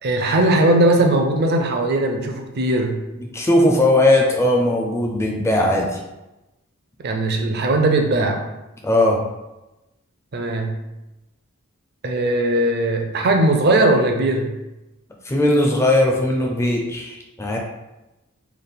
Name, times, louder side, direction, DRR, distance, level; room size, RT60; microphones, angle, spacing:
voice 1, 0.0-3.0 7.0-8.4 10.3-10.7 12.0-14.5, right 2 dB, 45° right, 3 dB, 0.5 m, -19 dB
voice 2, 3.3-5.9 8.8-9.2 15.3-17.6, left 1 dB, 10° left, 0 dB, 0.4 m, -18 dB
3.4 x 2.4 x 3.9 m, 0.99 s
head